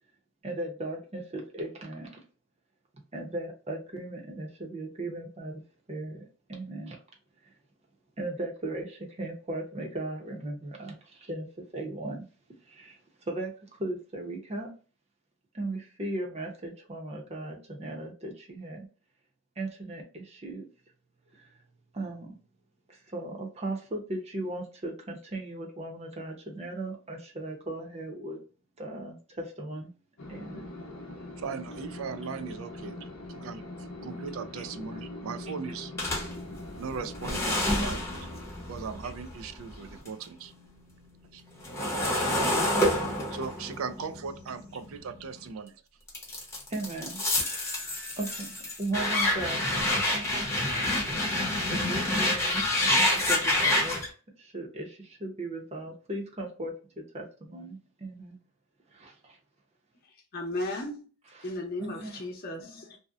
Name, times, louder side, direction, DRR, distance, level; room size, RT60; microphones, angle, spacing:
voice 1, 0.4-2.2 3.1-5.6 5.9-7.0 7.4-7.5 8.2-12.3 12.6-13.0 13.3-14.7 15.5-18.9 19.6-20.7 21.3-21.5 21.9-22.4 22.9-28.4 28.8-29.9 30.3-30.7 34.9-35.0 42.7-43.2 46.7-47.9 48.1-50.3 51.7-54.0 54.4-58.4 58.9-59.4 61.8-62.2, right 2 dB, 30° right, 0.6 m, -37 dB
sound 1, 30.2-41.3, left 1 dB, 80° left, 0.6 m, -43 dB
voice 2, 31.4-35.9 36.8-38.1 38.7-40.5 41.3-41.4 43.3-45.8, right 5 dB, 70° right, 0.3 m, -38 dB
sound 2, 36.0-40.2 40.6-45.5 46.1-54.1, left 1 dB, 15° left, 0.7 m, -28 dB
voice 3, 60.3-61.1 61.4-63.0, left 1 dB, 45° left, 0.7 m, -35 dB
2.7 x 2.1 x 2.3 m
head